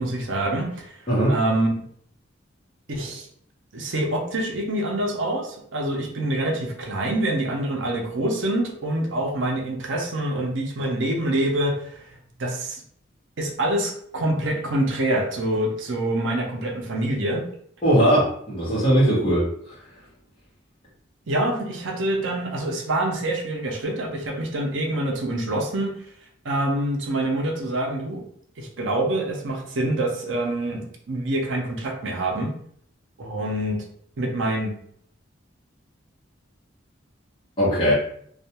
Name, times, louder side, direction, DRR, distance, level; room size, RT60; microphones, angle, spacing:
voice 1, 0.0-0.9 1.3-1.8 2.9-3.3 3.7-12.0 12.4-12.8 13.4-17.4 21.3-25.9 26.4-28.2 28.6-32.5 33.2-33.8 34.2-34.7, right 1 dB, 80° right, 2 dB, 0.6 m, -26 dB
voice 2, 17.8-19.5 37.6-37.9, equal, 30° left, -9 dB, 0.9 m, -19 dB
2.3 x 2.2 x 2.8 m, 0.64 s
head